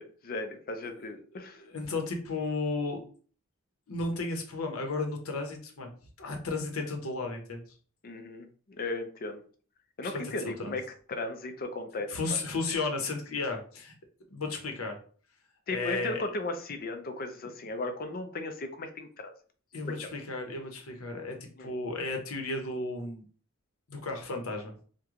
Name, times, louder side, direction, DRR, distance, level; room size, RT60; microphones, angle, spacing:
voice 1, 0.0-1.6 8.0-8.5 8.8-9.4 10.0-10.8 11.1-12.2 15.7-19.3 19.8-19.9 21.6-21.7, left 2 dB, 45° left, 6 dB, 0.5 m, -36 dB
voice 2, 1.4-3.0 3.9-5.9 6.2-7.6 10.0-10.2 10.6-10.8 12.1-13.9 14.3-15.0 15.7-16.2 19.7-23.2 23.9-24.7, left 3 dB, 85° left, 3 dB, 0.8 m, -34 dB
3.0 x 2.2 x 3.6 m, 0.43 s
head